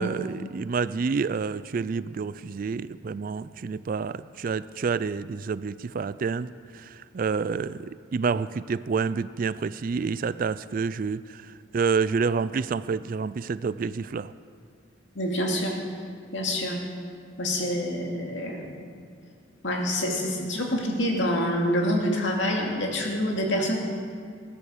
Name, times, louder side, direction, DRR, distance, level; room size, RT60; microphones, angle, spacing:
voice 1, 0.0-14.3, right 5 dB, 45° right, 16 dB, 0.3 m, -28 dB
voice 2, 15.2-15.7 16.3-16.8 17.4-18.6 19.6-23.8, equal, 60° left, 0 dB, 2.5 m, -26 dB
18.5 x 9.8 x 7.2 m, 2.1 s
head